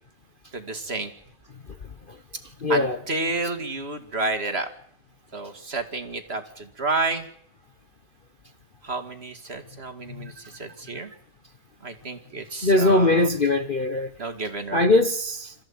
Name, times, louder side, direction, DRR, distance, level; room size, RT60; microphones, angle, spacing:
voice 1, 0.5-1.1 2.7-4.7 5.3-7.3 8.8-11.1 11.8-13.3 14.2-14.8, right 3 dB, 30° right, 2.5 m, -30 dB
voice 2, 2.6-3.0 10.1-10.3 12.6-14.1 14.7-15.5, left 2 dB, 35° left, 1.0 m, -21 dB
26.5 x 15.0 x 8.9 m
omnidirectional pair, 2.1 m